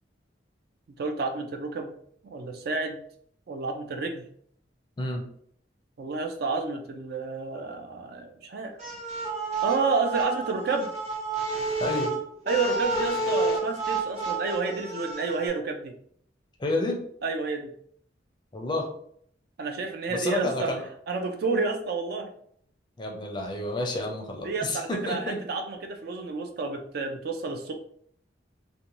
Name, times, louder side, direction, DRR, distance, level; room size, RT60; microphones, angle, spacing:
voice 1, 1.0-1.9 2.2-3.0 3.5-4.2 6.0-8.8 9.6-10.9 12.5-15.9 17.2-17.7 19.6-20.7 21.1-22.3 24.4-27.7, right 4 dB, 55° right, 5 dB, 0.4 m, -30 dB
sound 1, 8.8-15.5, right 3 dB, 35° right, 0.8 m, -30 dB
voice 2, 11.8-12.1 16.6-17.0 18.5-18.9 20.1-20.8 23.0-25.4, left 1 dB, 25° left, 2 dB, 0.4 m, -30 dB
2.6 x 2.1 x 2.9 m, 0.64 s
head